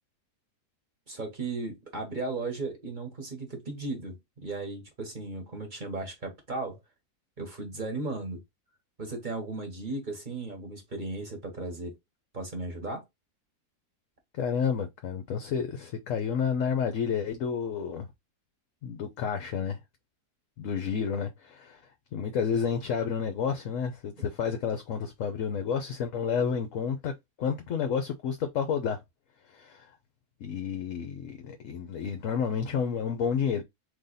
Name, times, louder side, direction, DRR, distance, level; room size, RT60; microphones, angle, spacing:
voice 1, 1.1-6.8 7.4-8.4 9.0-11.9 12.3-13.0, right 2 dB, 30° right, 1.4 m, -36 dB
voice 2, 14.3-18.1 18.8-19.8 20.6-21.8 22.1-27.1 27.4-29.0 29.5-29.9 30.4-33.6, left 6 dB, 60° left, 1.0 m, -30 dB
3.9 x 3.2 x 4.0 m
omnidirectional pair, 1.7 m